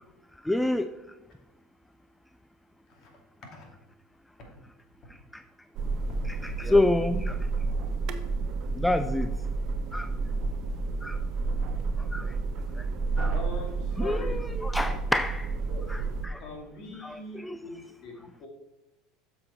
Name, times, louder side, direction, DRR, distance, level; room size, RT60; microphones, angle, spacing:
voice 1, 0.4-0.9 6.3-7.4 8.8-9.3 9.9-10.1 11.0-11.2 12.1-12.2 13.2-13.3 14.0-15.5 15.9-16.4 17.0-17.6, left 2 dB, 5° left, 10 dB, 0.4 m, -27 dB
sound 1, 5.8-16.3, right 3 dB, 55° right, 0.8 m, -30 dB
voice 2, 11.4-12.4 13.3-14.4 15.7-15.9 16.3-18.5, left 1 dB, 50° left, 1 dB, 2.5 m, -42 dB
7.5 x 6.3 x 4.5 m, 0.95 s
hypercardioid pair, 95°, 0 cm